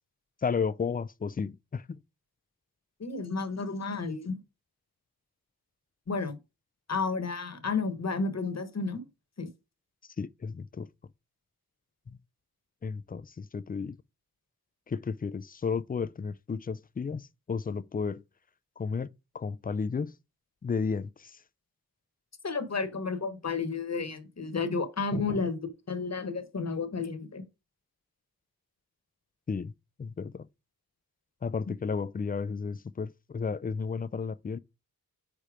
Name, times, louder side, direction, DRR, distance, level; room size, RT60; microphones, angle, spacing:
voice 1, 0.4-2.0 10.2-10.9 12.1-12.2 12.8-14.0 14.9-18.2 18.8-20.1 20.6-21.4 25.1-25.5 29.5-29.7 30.0-30.5 31.4-34.6, left 5 dB, 25° left, 0.4 m, -33 dB
voice 2, 3.0-4.4 6.1-6.4 6.9-9.1 9.4-9.5 22.4-27.4, left 4 dB, 45° left, 1.2 m, -32 dB
5.1 x 4.3 x 4.8 m
wide cardioid pair, 70°, 38 cm